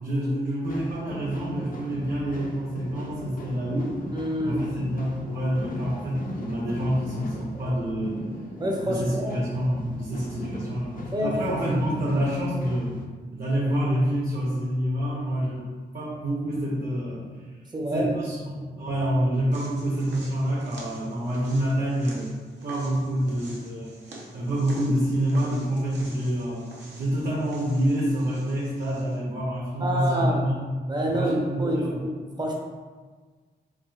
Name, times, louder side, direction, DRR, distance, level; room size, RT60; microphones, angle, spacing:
voice 1, 0.0-3.9 4.4-8.2 8.8-13.0 13.3-15.6 15.9-17.3 17.9-22.3 22.6-24.0 24.3-26.7 26.9-30.6 31.0-32.0, equal, 50° right, -6 dB, 0.8 m, -27 dB
sound 1, 0.6-13.0, left 1 dB, 50° left, 0.5 m, -38 dB
voice 2, 4.1-4.6 8.6-9.4 11.1-11.6 17.7-18.1 18.4-18.5 29.8-30.6 30.9-32.5, equal, 25° right, -1 dB, 0.6 m, -27 dB
sound 2, 19.5-29.2, right 2 dB, 80° right, 0.7 m, -48 dB
4.7 x 2.4 x 2.4 m, 1.4 s
wide cardioid pair, 95°, 18 cm